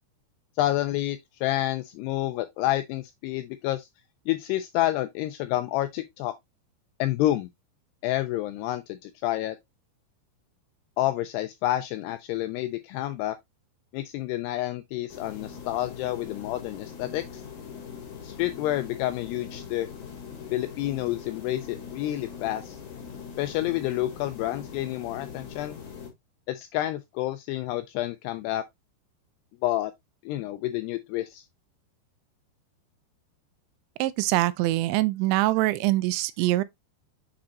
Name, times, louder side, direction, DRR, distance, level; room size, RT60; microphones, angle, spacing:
voice 1, 0.6-3.9 4.3-6.3 7.0-7.5 8.0-9.6 11.0-13.4 13.9-17.4 18.2-19.9 20.5-22.8 23.4-25.8 26.5-28.6 29.6-29.9 30.2-31.5, left 15 dB, 85° left, 2.4 m, -29 dB
sound 1, 15.1-26.1, left 6 dB, 50° left, 2.9 m, -42 dB
voice 2, 34.0-36.6, right 18 dB, 85° right, 2.9 m, -24 dB
7.1 x 5.0 x 2.8 m
omnidirectional pair, 5.1 m